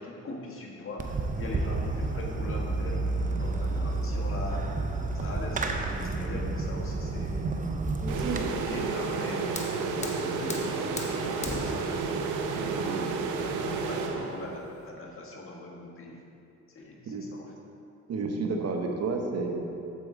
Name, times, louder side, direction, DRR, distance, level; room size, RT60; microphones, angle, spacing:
voice 1, 0.0-3.1 3.4-4.7 5.1-7.4 8.2-12.2 12.5-16.2 16.7-17.6, left 2 dB, 45° left, -1 dB, 1.5 m, -41 dB
Fireworks, 1.0-8.4, right 3 dB, 25° right, 0.7 m, -30 dB
sound 1, 8.1-14.7, right 4 dB, 85° right, 0.7 m, -31 dB
Fire, 8.9-14.9, left 2 dB, 20° left, 1.2 m, -41 dB
voice 2, 18.1-19.6, right 3 dB, 55° right, 3 dB, 1.0 m, -31 dB
8.5 x 7.6 x 3.7 m, 2.7 s
cardioid pair, 90°, 30 cm